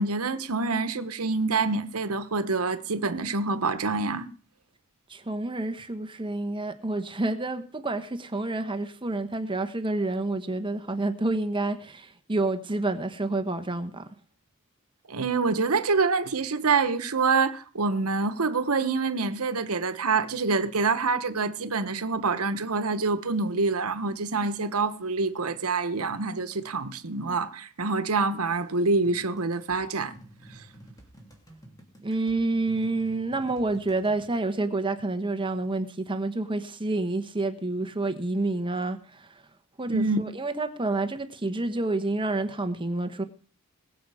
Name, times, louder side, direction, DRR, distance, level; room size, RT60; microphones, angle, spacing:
voice 1, 0.0-4.3 15.1-30.2 39.9-40.2, right 4 dB, 80° right, 1.1 m, -26 dB
voice 2, 5.1-14.0 32.0-39.4 39.8-43.2, right 2 dB, 25° right, 1.1 m, -29 dB
sound 1, 29.0-34.2, right 1 dB, 15° left, 2.7 m, -51 dB
20.5 x 7.7 x 4.9 m
head